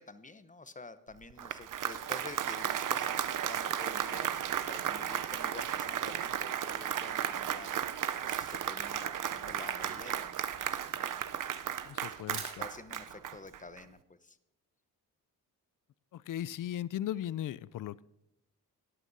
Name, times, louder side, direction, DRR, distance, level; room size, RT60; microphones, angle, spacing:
voice 1, 0.0-11.2 11.5-11.6 12.4-14.4, left 3 dB, 20° left, 12 dB, 0.9 m, -49 dB
Applause, 1.2-13.8, right 10 dB, 55° right, 0.6 m, -34 dB
Camera, 7.3-13.1, right 7 dB, 75° right, 1.8 m, -49 dB
voice 2, 11.8-12.6 16.1-18.0, left 11 dB, 55° left, 21 dB, 0.5 m, -37 dB
17.5 x 11.0 x 2.7 m, 0.88 s
supercardioid pair, 55°, 39 cm